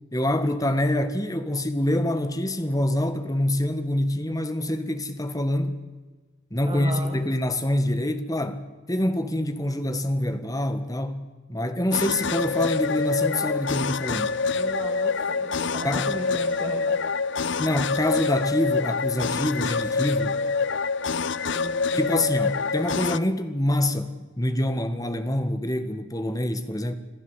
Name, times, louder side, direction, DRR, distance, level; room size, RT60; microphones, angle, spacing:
voice 1, 0.1-5.8 6.5-11.2 11.5-14.3 15.8-16.1 17.6-20.4 21.9-26.9, left 1 dB, 15° left, 1.7 m, -26 dB
voice 2, 6.6-7.2 14.5-17.0 21.5-22.2, right 1 dB, 25° right, 2.4 m, -36 dB
sound 1, 11.9-23.2, left 4 dB, 60° left, 0.7 m, -26 dB
27.0 x 15.0 x 8.3 m
head